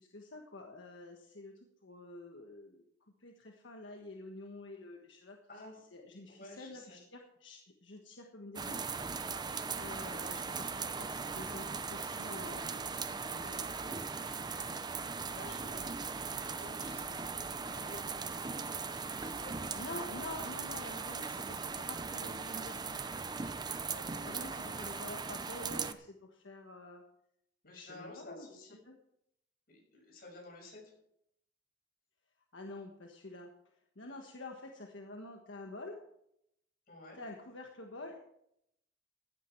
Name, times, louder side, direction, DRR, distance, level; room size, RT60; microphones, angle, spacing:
voice 1, 0.0-1.5 1.8-5.4 5.9-8.8 9.7-14.0 19.7-23.0 24.2-27.0 27.7-28.5 28.8-29.0 32.5-33.5 33.9-36.0 37.1-38.2, left 2 dB, 80° left, 2 dB, 1.4 m, -48 dB
voice 2, 5.5-5.8 6.3-7.0 15.3-15.9 16.4-18.2 19.0-19.9 23.9-24.5 27.6-28.8 29.7-30.9 36.9-37.2, left 2 dB, 50° left, 0 dB, 6.3 m, -52 dB
sound 1, 8.6-25.9, right 5 dB, 20° right, 0.6 m, -39 dB
15.5 x 9.7 x 4.6 m, 0.75 s
head